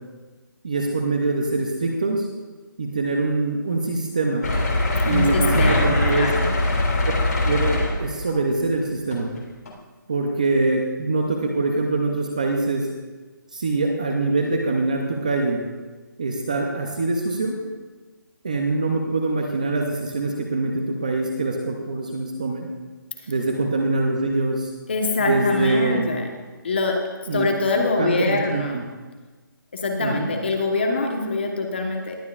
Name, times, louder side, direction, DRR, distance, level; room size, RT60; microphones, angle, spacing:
voice 1, 0.6-2.3 2.8-4.4 5.0-6.3 7.4-9.3 10.1-12.9 13.5-15.6 16.2-17.6 18.4-22.7 23.3-24.7 25.2-26.1 27.3-27.4 27.8-28.8 30.0-30.3, right 3 dB, 20° right, 2 dB, 0.6 m, -24 dB
sound 1, 4.4-8.3 9.1-9.3 9.7-9.8, left 2 dB, 50° left, 2.0 m, -22 dB
voice 2, 5.1-6.5 23.2-23.3 24.9-26.3 26.6-27.0 27.3-28.8 29.7-32.2, left 3 dB, 30° left, 2 dB, 1.1 m, -24 dB
19.5 x 9.0 x 2.4 m, 1.3 s
hypercardioid pair, 180°, 11 cm